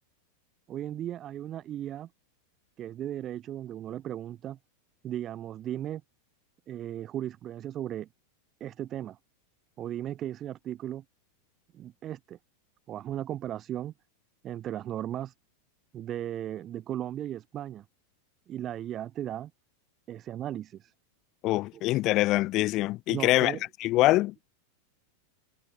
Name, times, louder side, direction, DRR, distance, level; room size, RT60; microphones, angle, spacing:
voice 1, 0.7-2.1 2.8-4.6 5.0-6.0 6.7-8.1 8.6-9.2 9.8-11.0 11.7-12.4 12.9-13.9 14.4-15.3 15.9-17.8 18.5-19.5 20.1-20.9 23.1-23.6, right 11 dB, 30° right, 5.7 m, -36 dB
voice 2, 21.4-24.3, left 18 dB, 40° left, 1.5 m, -24 dB
figure-of-eight pair, 90°, 0 cm